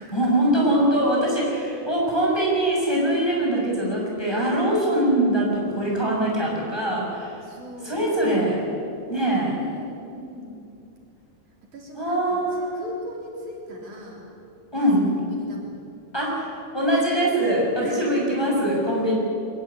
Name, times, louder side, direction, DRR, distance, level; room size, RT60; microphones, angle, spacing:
voice 1, 0.1-7.4 7.8-8.6 9.1-9.6 11.9-12.7 14.7-15.1 16.1-19.1, right 1 dB, 5° left, -4 dB, 6.5 m, -22 dB
voice 2, 7.4-8.1 9.6-10.7 11.6-14.3 14.7-15.8 17.8-18.6, right 1 dB, 65° right, -1 dB, 4.8 m, -39 dB
22.5 x 20.0 x 8.5 m, 2.6 s
omnidirectional pair, 3.7 m